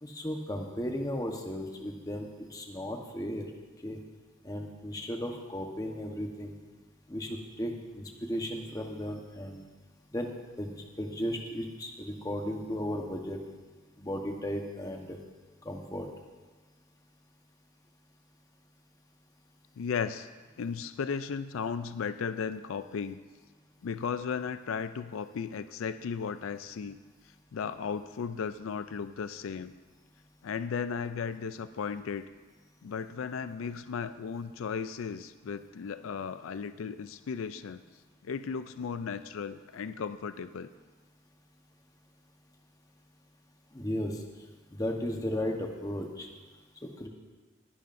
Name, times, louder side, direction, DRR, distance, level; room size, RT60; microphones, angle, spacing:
voice 1, 0.0-3.4 3.8-4.0 4.4-6.6 7.1-9.6 10.1-10.3 10.6-13.4 14.0-15.2 15.6-16.1 43.7-44.2 44.7-46.3 47.0-47.1, equal, 20° left, 2 dB, 1.1 m, -35 dB
voice 2, 19.8-20.3 20.6-23.2 23.8-27.0 27.5-29.7 30.4-32.3 32.8-37.8 38.2-40.7, left 6 dB, 80° left, 12 dB, 0.4 m, -35 dB
19.5 x 11.0 x 2.6 m, 1.3 s
head